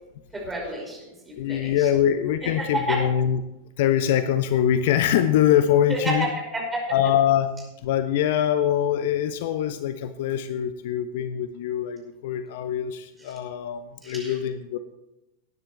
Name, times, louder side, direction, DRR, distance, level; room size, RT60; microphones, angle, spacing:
voice 1, 0.3-1.9 2.6-3.0 5.9-6.8 14.0-14.3, right 1 dB, 15° right, -2 dB, 5.4 m, -30 dB
voice 2, 1.4-3.4 3.8-6.3 6.9-7.5 7.8-14.8, left 10 dB, 50° left, 11 dB, 0.6 m, -23 dB
20.0 x 9.9 x 3.2 m, 0.94 s
figure-of-eight pair, 90°, 0 cm